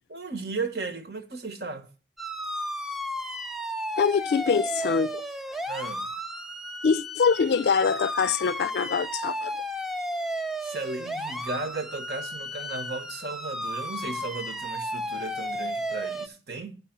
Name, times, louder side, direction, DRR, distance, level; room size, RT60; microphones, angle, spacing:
voice 1, 0.1-1.9 5.7-6.1 10.6-16.8, right 3 dB, 70° right, 1.2 m, -35 dB
sound 1, 2.2-16.3, equal, ahead, 0.4 m, -33 dB
voice 2, 4.0-5.2 6.8-9.5, left 6 dB, 70° left, 0.3 m, -24 dB
9.4 x 5.9 x 5.9 m
head